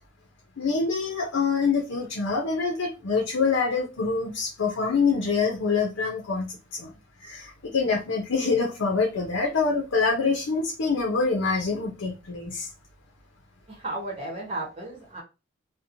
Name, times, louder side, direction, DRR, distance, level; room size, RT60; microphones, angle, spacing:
voice 1, 0.6-6.9 7.2-12.7, left 4 dB, 90° left, 0 dB, 0.6 m, -25 dB
voice 2, 13.7-15.2, right 2 dB, 30° right, -1 dB, 0.9 m, -34 dB
2.8 x 2.1 x 2.6 m, 0.28 s
head